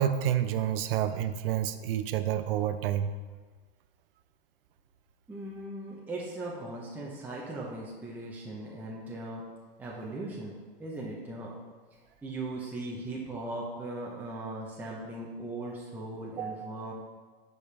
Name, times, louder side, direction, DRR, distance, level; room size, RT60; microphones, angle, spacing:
voice 1, 0.0-3.1 16.4-16.7, right 10 dB, 65° right, 10 dB, 0.7 m, -29 dB
voice 2, 5.3-9.4 9.8-10.5 10.8-11.5 12.2-16.9, right 2 dB, 5° right, -4 dB, 0.8 m, -38 dB
9.2 x 5.2 x 3.3 m, 1.4 s
hypercardioid pair, 130°, 30 cm